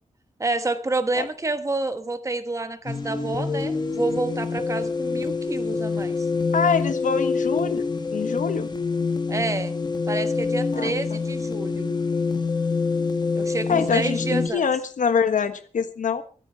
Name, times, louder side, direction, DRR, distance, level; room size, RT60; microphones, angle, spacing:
voice 1, 0.4-6.3 9.3-9.7 10.1-11.9 13.3-14.7, right 2 dB, 25° right, 10 dB, 1.2 m, -28 dB
sound 1, 2.9-14.5, left 4 dB, 35° left, 1.7 m, -26 dB
voice 2, 6.5-8.7 10.7-11.2 13.7-16.2, left 6 dB, 80° left, 11 dB, 1.4 m, -25 dB
23.5 x 9.0 x 4.5 m, 0.40 s
wide cardioid pair, 180°, 13 cm